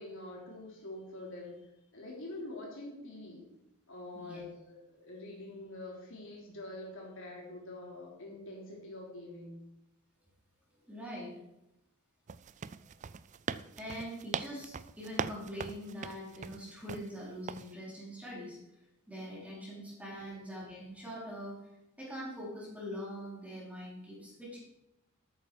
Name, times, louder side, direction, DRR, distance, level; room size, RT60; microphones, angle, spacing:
voice 1, 0.0-1.6 1.9-3.5 3.9-4.4 4.7-9.6 20.1-20.4, left 2 dB, 60° left, -2 dB, 3.6 m, -45 dB
voice 2, 10.9-11.4 12.7-12.9 13.8-18.6 19.1-21.6 22.0-24.6, equal, 5° right, -5 dB, 4.1 m, -43 dB
sound 1, 12.3-17.1 17.5-17.7, right 6 dB, 35° right, 0.3 m, -40 dB
13.0 x 9.0 x 4.7 m, 0.87 s
head